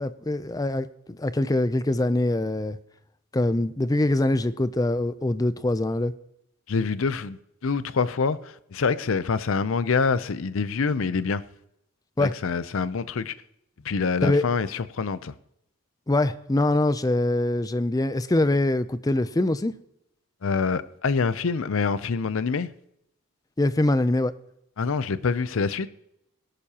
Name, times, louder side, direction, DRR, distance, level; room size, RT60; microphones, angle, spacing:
voice 1, 0.0-2.8 3.3-6.1 12.2-12.3 14.2-14.4 16.1-19.7 23.6-24.3, left 2 dB, 15° left, 0.4 m, -23 dB
voice 2, 6.7-11.4 12.2-13.3 13.8-15.3 20.4-22.7 24.8-25.9, left 5 dB, 65° left, 0.5 m, -26 dB
18.0 x 11.5 x 2.9 m
head